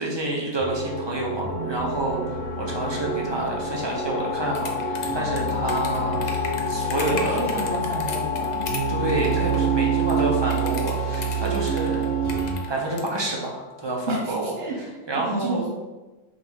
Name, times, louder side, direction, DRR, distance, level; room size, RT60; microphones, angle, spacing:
voice 1, 0.0-6.2 6.7-7.4 8.9-12.1 12.7-14.5 15.1-15.6, right 2 dB, 25° right, -2 dB, 0.6 m, -28 dB
sound 1, 0.6-14.1, left 9 dB, 90° left, 1.0 m, -33 dB
sound 2, 0.6-12.5, right 5 dB, 80° right, 1.6 m, -28 dB
sound 3, 4.5-8.8 9.1-9.7 10.0-13.2, left 4 dB, 75° left, 0.4 m, -36 dB
voice 2, 7.0-8.7 14.1-14.8 15.1-15.6, right 1 dB, 55° right, -2 dB, 1.0 m, -30 dB
5.3 x 2.5 x 3.5 m, 1.2 s
omnidirectional pair, 1.4 m